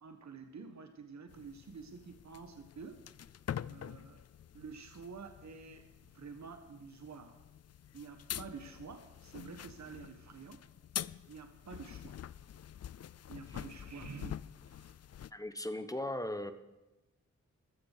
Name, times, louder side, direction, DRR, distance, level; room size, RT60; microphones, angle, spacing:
voice 1, 0.0-3.0 3.6-4.2 4.5-7.4 7.9-10.7 11.3-12.2 13.3-14.3 14.7-15.0, right 5 dB, 65° right, 6 dB, 1.3 m, -49 dB
sound 1, 1.3-15.3, left 10 dB, 60° left, 0.4 m, -46 dB
voice 2, 15.3-16.5, left 1 dB, 10° left, 10 dB, 1.1 m, -37 dB
14.5 x 13.5 x 6.6 m, 1.0 s
wide cardioid pair, 80°, 29 cm